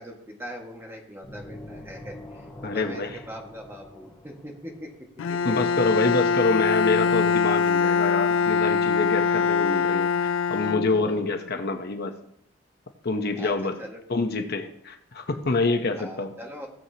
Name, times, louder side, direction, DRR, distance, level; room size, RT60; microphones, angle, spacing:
voice 1, 0.0-4.9 5.3-5.6 10.8-11.2 13.4-14.3 16.0-16.7, equal, 10° right, 0 dB, 1.7 m, -41 dB
sound 1, 1.2-5.0, left 1 dB, 10° left, 3.3 m, -44 dB
voice 2, 2.6-3.2 5.4-12.1 13.0-13.8 14.1-16.3, left 3 dB, 55° left, 6 dB, 0.9 m, -26 dB
Bowed string instrument, 5.2-11.4, left 5 dB, 70° left, 0.4 m, -23 dB
17.5 x 7.4 x 2.9 m, 0.69 s
head